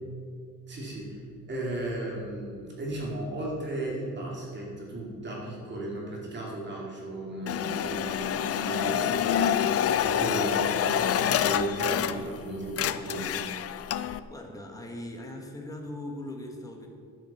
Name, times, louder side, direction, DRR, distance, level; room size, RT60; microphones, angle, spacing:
voice 1, 0.7-1.2 1.5-13.5, right 1 dB, 30° right, -2 dB, 2.5 m, -35 dB
sound 1, 7.5-12.4 12.7-14.2, left 10 dB, 45° left, 0.5 m, -27 dB
voice 2, 14.3-16.9, left 1 dB, 10° left, 1 dB, 1.6 m, -39 dB
11.0 x 8.6 x 7.2 m, 2.3 s
cardioid pair, 175°, 34 cm